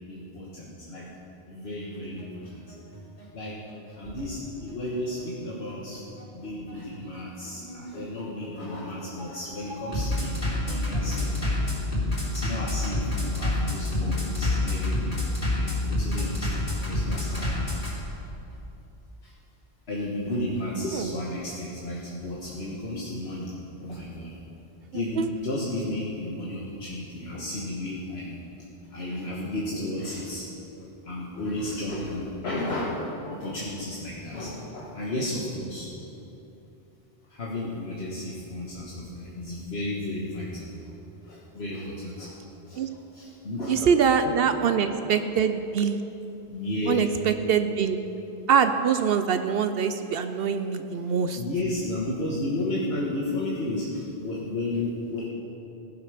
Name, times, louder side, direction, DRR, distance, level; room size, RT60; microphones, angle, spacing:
voice 1, 0.1-1.1 1.5-2.6 3.3-3.6 3.9-6.0 6.3-11.7 12.3-15.1 15.5-17.7 19.2-19.3 19.9-23.5 23.8-24.3 24.9-28.4 28.9-30.5 30.8-35.9 37.3-40.7 41.2-42.3 42.7-42.8 43.1-43.7 44.2-44.4 46.5-47.0 51.4-55.3, left 1 dB, 80° left, -6 dB, 1.8 m, -33 dB
Bass drum, 1.9-17.9, left 2 dB, 50° left, 3.8 m, -28 dB
voice 2, 24.9-25.3 42.7-42.9 43.7-46.0 46.9-48.0 48.5-51.4, right 7 dB, 70° right, 9 dB, 0.8 m, -24 dB
15.5 x 11.5 x 5.1 m, 2.9 s
omnidirectional pair, 1.0 m